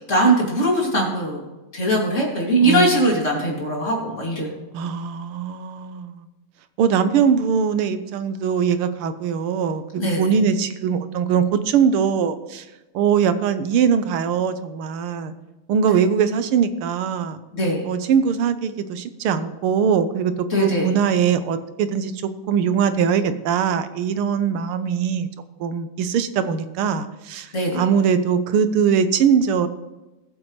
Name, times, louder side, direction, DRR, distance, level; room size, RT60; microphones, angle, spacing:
voice 1, 0.1-1.4 1.7-4.5 10.0-10.3 17.5-17.8 20.5-20.9 27.5-27.8, right 1 dB, 35° left, -2 dB, 3.0 m, -20 dB
voice 2, 2.6-3.1 4.7-6.2 6.8-12.7 12.9-15.3 15.7-17.4 17.8-20.3 20.6-25.3 25.6-29.7, right 7 dB, 90° right, 11 dB, 1.7 m, -21 dB
19.5 x 7.5 x 3.2 m, 1.1 s
omnidirectional pair, 2.3 m